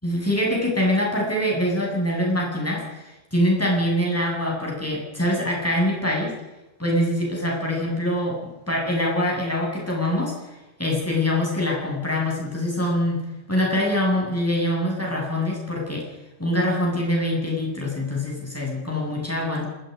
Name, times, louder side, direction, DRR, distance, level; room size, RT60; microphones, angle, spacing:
voice 1, 0.0-6.3 6.8-10.3 10.8-13.2 13.5-16.1 16.4-19.7, left 1 dB, 15° left, -2 dB, 7.8 m, -24 dB
27.5 x 19.0 x 5.4 m, 1.0 s
omnidirectional pair, 1.1 m